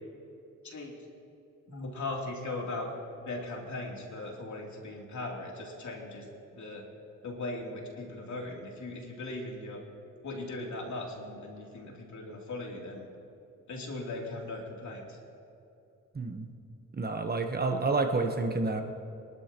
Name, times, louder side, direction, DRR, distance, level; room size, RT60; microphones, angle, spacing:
voice 1, 0.6-1.0 1.7-2.9 3.2-6.3 6.5-6.8 7.2-9.8 10.2-13.1 13.7-15.2, left 2 dB, 60° left, -1 dB, 3.2 m, -38 dB
voice 2, 16.1-16.5 16.9-18.8, right 3 dB, 30° right, 5 dB, 1.1 m, -29 dB
23.5 x 12.0 x 3.0 m, 2.7 s
cardioid pair, 85°, 32 cm